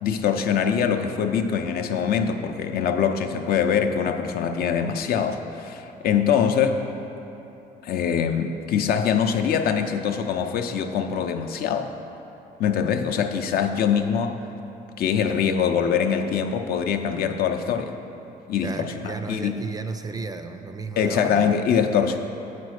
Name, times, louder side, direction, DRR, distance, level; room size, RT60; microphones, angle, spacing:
voice 1, 0.0-6.8 7.8-11.9 12.6-14.4 15.0-17.9 18.5-19.6 21.0-22.2, left 7 dB, 65° left, 6 dB, 0.5 m, -23 dB
voice 2, 18.6-21.5, right 4 dB, 20° right, 8 dB, 0.3 m, -33 dB
8.4 x 4.2 x 6.4 m, 3.0 s
cardioid pair, 110°, 17 cm